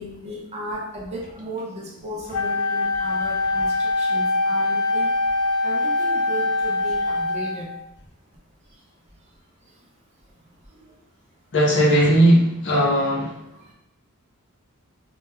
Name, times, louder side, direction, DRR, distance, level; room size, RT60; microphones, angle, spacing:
voice 1, 0.0-5.1 5.6-7.7 8.0-8.1 8.7-8.9 9.2-9.4 9.6-9.9 10.2-11.0 13.5-13.7, equal, 30° right, -2 dB, 0.5 m, -36 dB
Wind instrument woodwind instrument, 2.3-7.8, left 2 dB, 85° left, 0.3 m, -23 dB
voice 2, 11.5-13.4, right 1 dB, 55° left, -3 dB, 0.7 m, -17 dB
3.0 x 2.2 x 2.2 m, 0.79 s
head